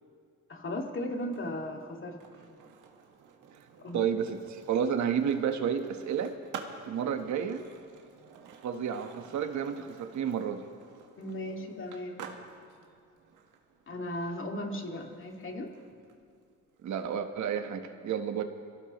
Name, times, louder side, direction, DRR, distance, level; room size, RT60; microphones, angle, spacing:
voice 1, 0.5-2.2 2.5-2.6 3.8-4.0 11.2-12.3 13.9-15.7, left 1 dB, 40° left, 2 dB, 2.1 m, -36 dB
Skateboard, 1.2-17.1, right 6 dB, 85° right, 1.5 m, -51 dB
voice 2, 3.9-6.4 6.8-7.6 8.6-10.6 16.8-18.4, right 8 dB, 70° right, 7 dB, 1.2 m, -31 dB
24.5 x 16.0 x 3.1 m, 2.2 s
cardioid pair, 90°, 30 cm